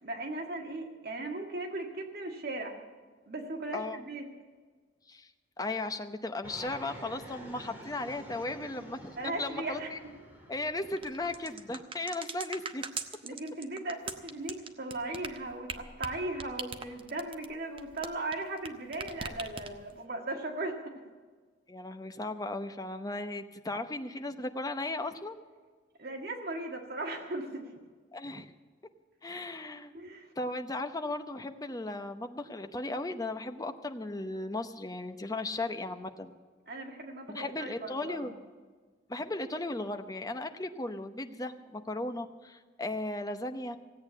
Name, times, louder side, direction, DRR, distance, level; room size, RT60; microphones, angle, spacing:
voice 1, 0.0-2.8 3.3-4.2 9.2-9.9 13.2-20.9 26.0-27.7 29.9-30.3 36.7-38.4, right 2 dB, 55° right, 2 dB, 1.9 m, -37 dB
voice 2, 5.6-10.0 10.5-12.8 21.7-25.4 28.1-28.5 29.2-29.9 30.4-36.4 37.3-38.3 39.1-43.8, left 2 dB, 20° left, 7 dB, 0.8 m, -36 dB
Fixed-wing aircraft airplane, 6.4-11.8, equal, 10° right, 2.5 m, -49 dB
sound 1, 11.0-18.7 18.9-20.0, right 5 dB, 30° right, 0.9 m, -40 dB
16.5 x 8.7 x 8.2 m, 1.5 s
head